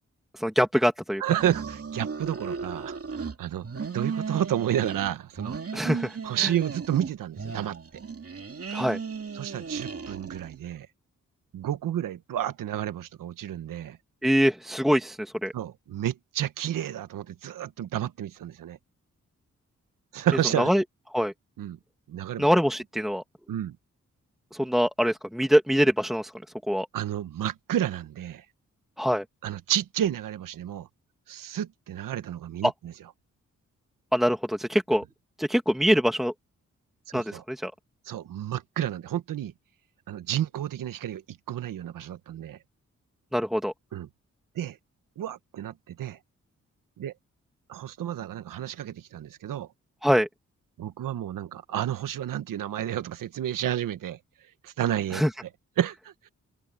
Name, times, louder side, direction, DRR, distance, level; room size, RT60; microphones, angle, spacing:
voice 1, 0.3-1.2 5.7-6.5 8.7-9.0 14.2-15.5 20.6-20.8 21.1-21.3 22.4-23.2 24.5-26.3 26.7-26.9 29.0-29.2 32.6-32.7 34.1-35.0 35.4-36.3 37.1-37.7 43.3-43.7 50.0-50.3 55.1-55.3, equal, ahead, 1.8 m, -24 dB
voice 2, 1.2-3.7 3.9-5.6 6.2-7.8 9.3-10.9 11.5-14.0 15.5-18.8 20.1-20.7 21.6-21.8 22.1-22.5 23.5-23.8 26.9-28.4 29.4-30.9 31.3-32.9 37.1-37.4 38.0-39.5 40.1-42.6 43.9-44.1 44.5-44.8 45.2-46.2 47.0-47.1 47.7-49.7 50.8-54.2 54.6-55.2 55.8-56.3, right 11 dB, 90° right, 1.3 m, -31 dB
sound 1, 1.3-3.3 3.6-5.1 5.4-7.1 7.4-10.6, right 5 dB, 45° right, 2.5 m, -35 dB
open air
cardioid pair, 50°, 32 cm